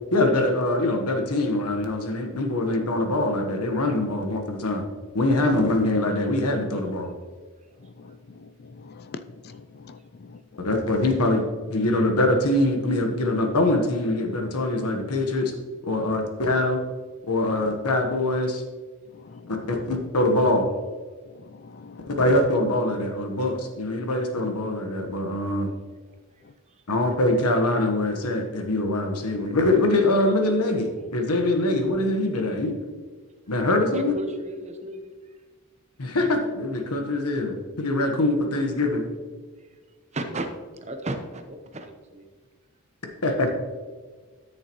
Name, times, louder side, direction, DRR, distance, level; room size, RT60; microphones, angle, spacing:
voice 1, 0.1-4.8 5.1-7.1 10.6-11.4 11.7-15.5 15.8-16.8 17.3-18.6 19.5-20.7 22.1-25.7 26.9-32.7 33.5-34.1 36.0-39.0 43.2-43.5, left 1 dB, 90° left, 4 dB, 1.2 m, -23 dB
voice 2, 7.8-10.7 16.0-16.3 17.5-17.8 19.1-20.0 21.2-22.3 26.4-26.5, left 4 dB, 45° left, 11 dB, 0.4 m, -45 dB
voice 3, 33.9-35.1 40.1-40.5 40.8-42.3, right 2 dB, 30° right, 6 dB, 0.9 m, -33 dB
13.0 x 6.6 x 3.0 m, 1.5 s
head